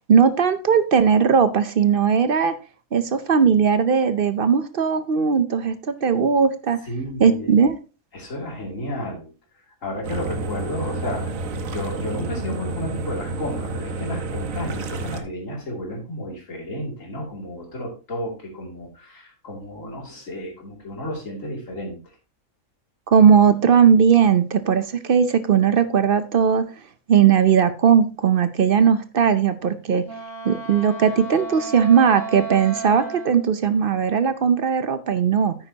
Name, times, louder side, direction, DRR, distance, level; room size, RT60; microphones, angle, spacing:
voice 1, 0.1-2.5 2.9-6.8 7.2-7.8 23.1-26.7 27.1-30.0 30.4-35.5, right 7 dB, 50° right, 11 dB, 0.7 m, -18 dB
voice 2, 6.9-7.5 8.1-9.3 9.8-11.3 11.7-22.0, left 1 dB, 75° left, -1 dB, 3.1 m, -32 dB
sound 1, 10.0-15.2, right 3 dB, 85° right, 1.4 m, -30 dB
Wind instrument woodwind instrument, 30.0-33.5, right 3 dB, 30° left, 2.4 m, -34 dB
9.8 x 8.6 x 2.8 m, 0.33 s
omnidirectional pair, 1.4 m